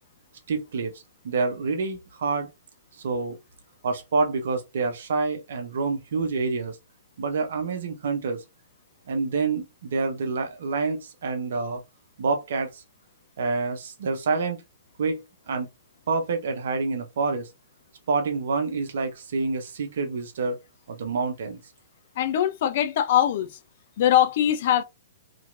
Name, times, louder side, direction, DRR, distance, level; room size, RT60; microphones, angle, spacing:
voice 1, 0.5-0.9 1.2-2.5 3.0-3.4 3.8-6.8 7.2-8.4 9.1-11.8 12.2-12.8 13.4-14.6 15.0-15.7 16.1-17.5 18.1-20.6 20.9-21.6, right 4 dB, 60° right, 0.7 m, -27 dB
voice 2, 22.2-23.5 24.0-24.8, left 11 dB, 50° left, 0.5 m, -21 dB
3.0 x 2.8 x 2.5 m
figure-of-eight pair, 115°, 0 cm